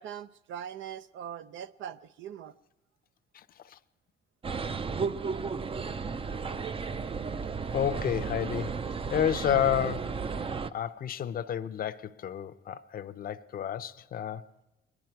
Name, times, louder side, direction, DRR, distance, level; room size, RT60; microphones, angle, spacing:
voice 1, 0.0-2.5, right 9 dB, 75° right, 0.5 m, -41 dB
voice 2, 3.3-3.8 7.7-8.8 9.1-10.2 10.7-14.4, left 10 dB, 45° left, 0.6 m, -31 dB
sound 1, 4.4-10.7, right 5 dB, 30° right, 0.5 m, -33 dB
23.0 x 11.0 x 4.5 m
cardioid pair, 90°, 20 cm